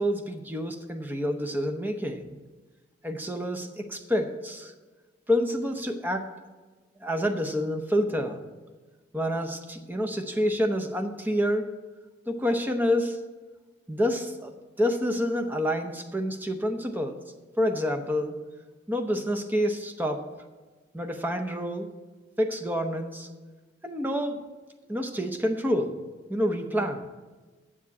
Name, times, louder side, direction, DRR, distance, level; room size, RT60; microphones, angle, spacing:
voice 1, 0.0-2.4 3.0-4.7 5.3-6.3 7.0-8.4 9.1-11.7 12.3-13.2 13.9-14.5 14.8-17.2 17.6-18.4 18.9-20.2 20.9-21.9 22.4-23.3 23.8-24.4 24.9-26.0 26.3-27.0, equal, 10° right, 5 dB, 0.7 m, -28 dB
7.3 x 7.2 x 8.2 m, 1.3 s
head